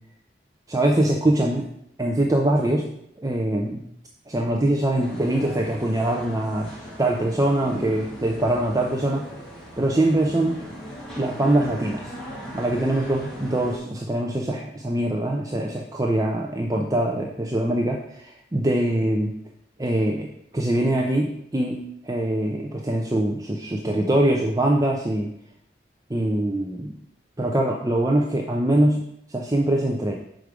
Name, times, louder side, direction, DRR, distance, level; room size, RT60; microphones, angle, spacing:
voice 1, 0.7-1.7 2.0-2.9 3.2-3.8 4.3-6.7 7.0-9.2 9.8-10.6 11.1-12.1 12.5-19.3 19.8-20.3 20.5-25.3 26.1-26.9 27.4-29.0 29.3-30.1, right 1 dB, 20° right, 0 dB, 0.5 m, -23 dB
sound 1, 5.0-13.8, equal, 5° left, 1.6 m, -38 dB
6.2 x 5.0 x 4.8 m, 0.73 s
head